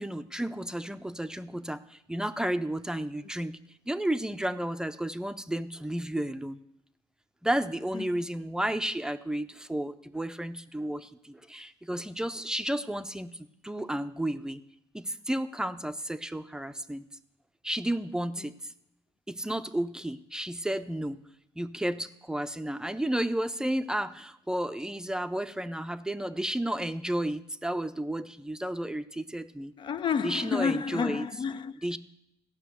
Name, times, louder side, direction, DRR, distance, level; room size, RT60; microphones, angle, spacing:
voice 1, 0.0-3.6 3.9-6.6 7.4-14.6 14.9-17.0 17.6-18.7 19.3-21.2 21.6-29.7 30.2-31.3 31.8-32.0, right 1 dB, 5° right, 0.5 m, -32 dB
voice 2, 29.8-32.0, left 6 dB, 50° left, 0.4 m, -31 dB
14.5 x 6.0 x 8.2 m
cardioid pair, 100°, 11 cm